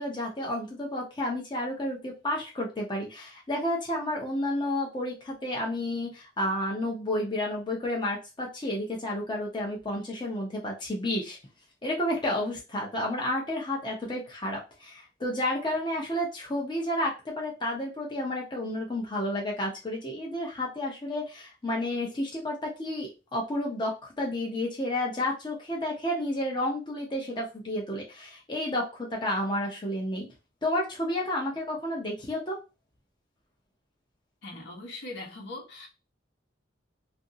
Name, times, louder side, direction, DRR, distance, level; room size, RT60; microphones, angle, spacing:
voice 1, 0.0-11.4 11.8-30.3 30.6-32.6, left 1 dB, 25° left, 0.6 m, -31 dB
voice 2, 34.4-35.9, left 2 dB, 65° left, 1.0 m, -40 dB
2.8 x 2.6 x 2.6 m
head